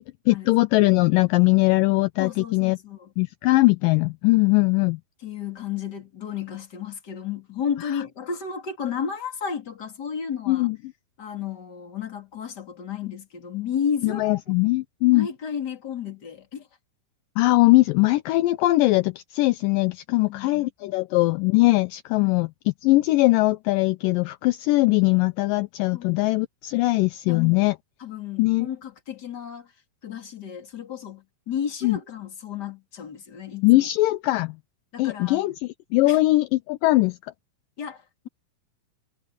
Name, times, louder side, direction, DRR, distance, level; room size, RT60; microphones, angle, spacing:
voice 1, 0.0-2.8 3.2-5.0 10.5-10.8 14.0-15.3 17.4-27.8 28.4-28.7 31.8-32.0 33.6-34.6 35.0-37.2, left 20 dB, 80° left, 2.2 m, -21 dB
voice 2, 2.2-3.1 5.2-10.7 11.2-14.4 15.1-16.7 20.2-21.0 22.2-22.3 25.9-26.1 27.3-27.6 28.0-29.7 30.0-33.9 34.9-35.5 36.1-36.2 37.8-38.3, left 7 dB, 30° left, 2.9 m, -33 dB
omnidirectional pair, 4.2 m